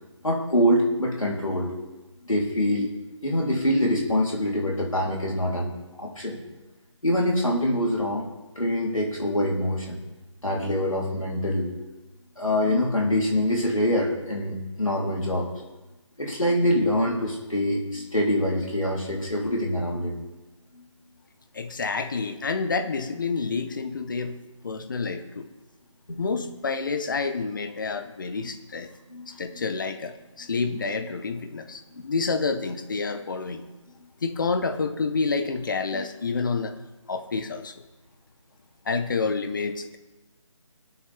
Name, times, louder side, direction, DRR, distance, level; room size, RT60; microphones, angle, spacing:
voice 1, 0.2-1.7 2.3-2.9 3.2-5.7 6.0-6.4 7.0-8.3 8.6-10.0 10.4-11.7 12.4-15.5 16.2-20.2 26.1-26.2 29.1-29.3 31.9-32.0 35.9-36.0 36.3-36.4, left 1 dB, 85° left, -3 dB, 3.6 m, -25 dB
voice 2, 21.5-24.4 24.6-25.5 26.2-28.9 29.4-33.6 34.2-36.7 37.1-37.7 38.9-40.0, left 4 dB, 40° left, 9 dB, 1.0 m, -28 dB
20.0 x 8.4 x 3.6 m, 1.1 s
figure-of-eight pair, 155°, 17 cm